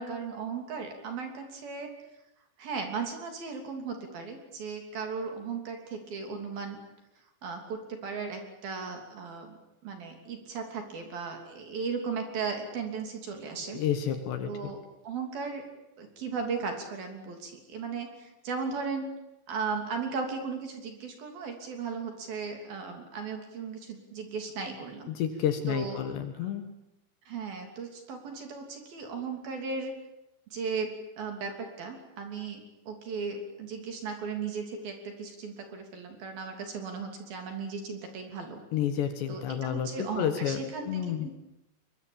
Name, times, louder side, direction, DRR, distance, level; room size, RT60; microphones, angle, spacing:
voice 1, 0.0-1.9 2.6-6.8 7.4-13.8 14.4-14.8 15.0-15.6 16.0-19.1 19.5-25.1 25.7-26.0 26.3-26.5 27.3-29.9 30.5-30.9 31.2-32.6 32.9-38.6 39.3-41.3, right 5 dB, 50° right, 4 dB, 4.4 m, -36 dB
voice 2, 13.7-14.5 25.2-26.6 38.7-40.6 40.9-41.3, left 9 dB, 65° left, 8 dB, 3.3 m, -30 dB
23.0 x 22.0 x 8.9 m, 0.90 s
omnidirectional pair, 6.0 m